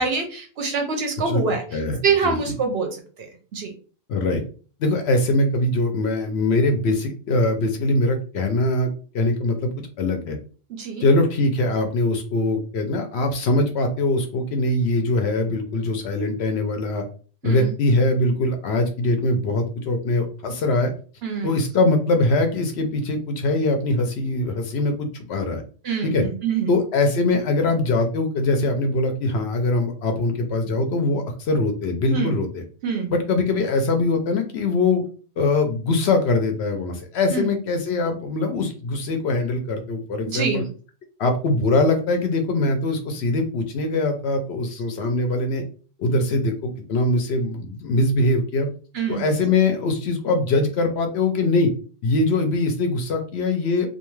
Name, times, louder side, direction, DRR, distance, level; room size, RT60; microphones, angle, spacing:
voice 1, 0.0-1.6 2.0-2.9 3.5-3.7 10.8-11.0 17.4-17.7 21.2-21.5 25.8-26.7 32.1-32.3 32.8-33.1 37.3-37.5 40.3-40.6 48.9-49.2, right 5 dB, 60° right, 4 dB, 0.8 m, -24 dB
voice 2, 1.7-2.6 4.1-4.4 4.8-8.9 9.1-10.4 11.0-17.0 17.4-20.9 21.4-25.6 26.0-26.3 26.7-32.6 33.1-35.0 35.4-40.6 41.2-45.6 46.0-48.7 49.1-51.7 52.0-53.9, left 2 dB, 65° left, 5 dB, 0.7 m, -22 dB
2.5 x 2.3 x 3.0 m, 0.39 s
omnidirectional pair, 1.3 m